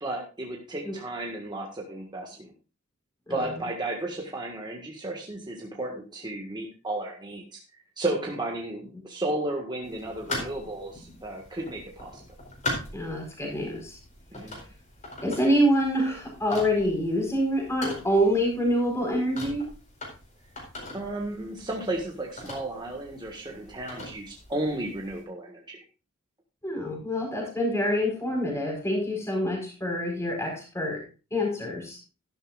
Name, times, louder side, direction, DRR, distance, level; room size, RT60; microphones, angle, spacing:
voice 1, 0.0-2.5 3.3-7.6 8.0-12.2 14.3-14.6 20.9-25.8, right 2 dB, 20° right, 0 dB, 1.6 m, -33 dB
sound 1, 9.8-25.2, left 2 dB, 35° left, 4.5 m, -41 dB
voice 2, 12.9-14.0 15.2-19.7 26.6-31.0 31.3-32.0, equal, 15° left, -1 dB, 4.7 m, -26 dB
12.5 x 11.5 x 2.4 m, 0.32 s
head